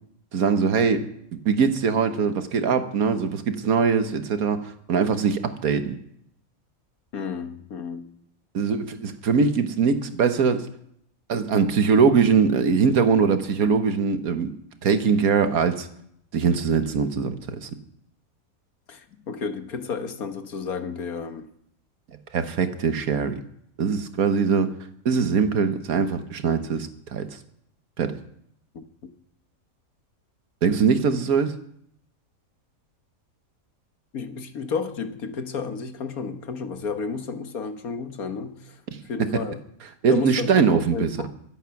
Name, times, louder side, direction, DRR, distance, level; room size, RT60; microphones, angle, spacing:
voice 1, 0.3-1.1 1.4-6.0 8.5-10.7 11.3-14.5 14.8-15.9 16.3-17.7 22.3-23.4 23.8-24.7 25.0-27.3 28.0-28.1 30.6-31.6 38.9-39.3 40.0-41.3, right 5 dB, 80° right, 1.6 m, -22 dB
voice 2, 7.1-8.1 18.9-21.5 29.0-29.1 34.1-39.6 40.1-41.3, left 5 dB, 85° left, 1.7 m, -32 dB
23.5 x 8.2 x 5.9 m
omnidirectional pair, 1.5 m